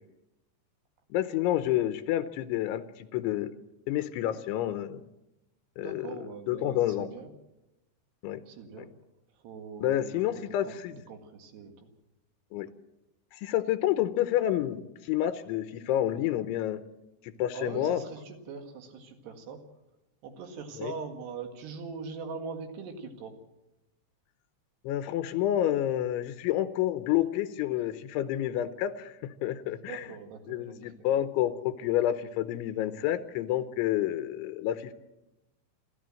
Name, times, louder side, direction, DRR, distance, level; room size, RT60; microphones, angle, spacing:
voice 1, 1.1-3.5 3.9-5.0 5.8-6.2 6.5-7.1 8.2-8.4 8.8-8.9 9.8-11.0 12.5-12.7 13.3-16.8 17.2-18.0 20.8-20.9 24.8-30.1 30.5-34.9, left 12 dB, 85° left, 10 dB, 3.2 m, -29 dB
voice 2, 5.8-7.3 8.5-8.9 9.4-11.9 17.5-19.6 20.2-23.3 29.8-30.9, right 5 dB, 65° right, 5 dB, 3.8 m, -42 dB
28.5 x 13.0 x 7.6 m, 0.96 s
omnidirectional pair, 5.4 m